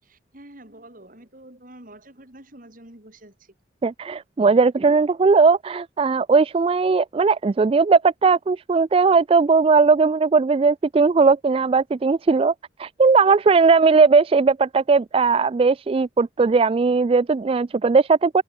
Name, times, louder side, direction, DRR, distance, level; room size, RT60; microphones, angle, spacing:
voice 1, 0.0-3.5, right 1 dB, 45° right, 4.3 m, -47 dB
voice 2, 3.8-12.5 12.8-18.4, right 4 dB, 30° right, 0.3 m, -18 dB
head